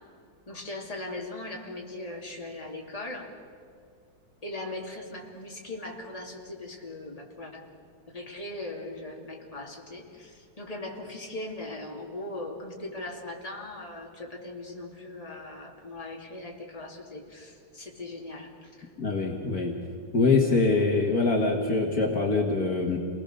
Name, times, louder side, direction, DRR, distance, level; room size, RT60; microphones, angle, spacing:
voice 1, 0.5-3.3 4.4-7.7 8.1-18.9, left 2 dB, 20° left, -1 dB, 2.9 m, -39 dB
voice 2, 19.0-19.7 20.1-23.0, left 3 dB, 55° left, 1 dB, 2.2 m, -24 dB
28.5 x 20.0 x 6.8 m, 2.3 s
omnidirectional pair, 2.0 m